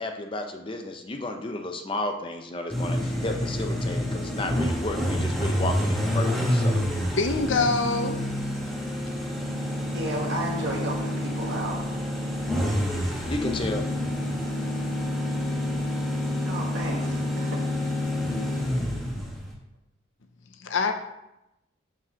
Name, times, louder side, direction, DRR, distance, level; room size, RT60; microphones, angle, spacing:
voice 1, 0.0-6.8 13.3-13.8, left 2 dB, 25° left, 4 dB, 0.6 m, -32 dB
sound 1, 2.7-19.5, left 1 dB, ahead, 1.3 m, -28 dB
voice 2, 7.0-8.3 20.6-20.9, left 4 dB, 65° left, 6 dB, 0.6 m, -25 dB
voice 3, 9.9-11.9 16.4-17.6, right 1 dB, 55° right, -3 dB, 1.5 m, -33 dB
6.2 x 4.7 x 6.3 m, 0.89 s
head